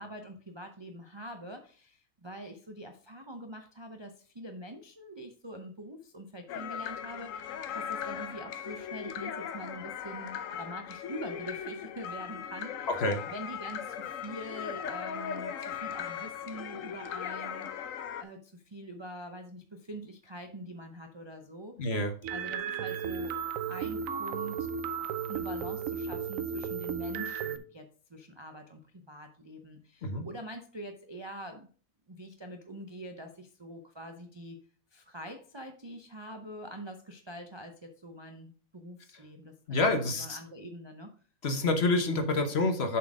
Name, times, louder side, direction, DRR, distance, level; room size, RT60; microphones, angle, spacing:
voice 1, 0.0-17.9 18.2-21.8 22.3-23.4 23.7-24.7 25.2-31.7 32.1-34.6 34.9-41.1, right 1 dB, 30° right, 4 dB, 0.5 m, -44 dB
sound 1, 6.5-18.2, left 8 dB, 70° left, 1.0 m, -38 dB
voice 2, 21.8-22.1 30.0-30.2 39.7-40.4 41.4-43.0, left 2 dB, 50° left, 6 dB, 1.2 m, -27 dB
sound 2, 22.2-27.6, right 7 dB, 75° right, 1.0 m, -34 dB
7.1 x 4.3 x 4.8 m, 0.42 s
omnidirectional pair, 1.5 m